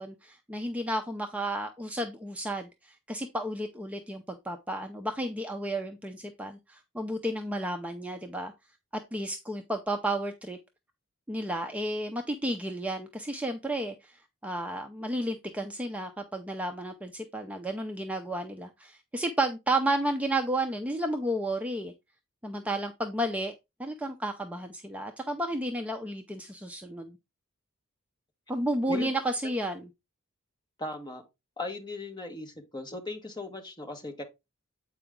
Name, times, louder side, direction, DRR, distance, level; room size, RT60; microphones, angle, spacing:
voice 1, 0.0-8.5 8.9-10.6 11.3-21.9 22.4-23.5 23.8-27.2 28.5-29.9, right 1 dB, 5° right, 0.5 m, -32 dB
voice 2, 30.8-31.2 31.6-34.2, left 2 dB, 20° left, 1.3 m, -38 dB
8.1 x 4.7 x 3.6 m
head